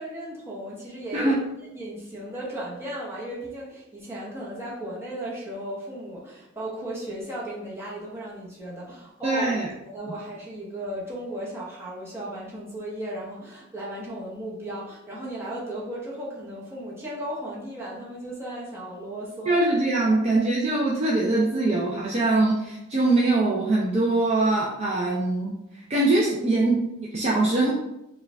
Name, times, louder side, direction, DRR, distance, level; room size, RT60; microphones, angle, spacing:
voice 1, 0.0-1.4 1.7-19.7 20.0-20.1, right 1 dB, 10° right, -5 dB, 1.0 m, -35 dB
voice 2, 9.2-9.7 10.0-10.1 19.5-25.5 25.9-27.7, right 2 dB, 30° right, -4 dB, 0.5 m, -22 dB
4.6 x 2.4 x 3.3 m, 0.87 s
head